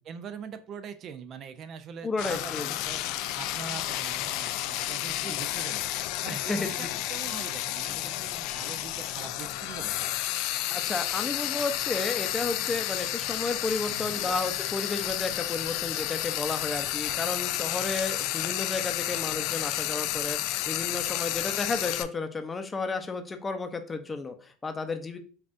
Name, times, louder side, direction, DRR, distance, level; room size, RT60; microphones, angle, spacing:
voice 1, 0.0-3.0 3.4-5.8 6.2-10.1 13.9-14.3, right 7 dB, 45° right, 10 dB, 0.4 m, -42 dB
voice 2, 2.0-2.7 6.3-6.9 10.7-25.2, left 3 dB, 20° left, 7 dB, 0.6 m, -32 dB
Frying (food), 2.2-22.0, left 14 dB, 65° left, 0.3 m, -31 dB
sound 1, 7.3-7.7 8.5-8.9 9.7-10.1 10.9-11.2 12.1-12.5 13.3-13.7 14.5-15.0 15.7-16.1, left 6 dB, 85° left, 1.0 m, -50 dB
5.4 x 2.4 x 2.5 m, 0.40 s
supercardioid pair, 105°, 0 cm